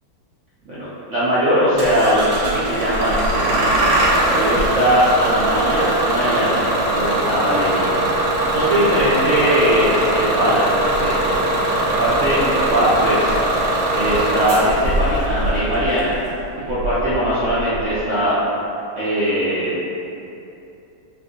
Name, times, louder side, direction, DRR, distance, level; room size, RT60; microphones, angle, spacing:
voice 1, 0.7-3.7 4.3-7.9 8.5-11.4 11.8-13.3 13.9-16.1 16.5-18.4 19.0-19.7, equal, 65° right, -11 dB, 0.7 m, -20 dB
Bus / Engine starting, 1.8-18.0, right 1 dB, 90° right, 1.3 m, -21 dB
3.5 x 2.5 x 2.4 m, 2.8 s
omnidirectional pair, 1.9 m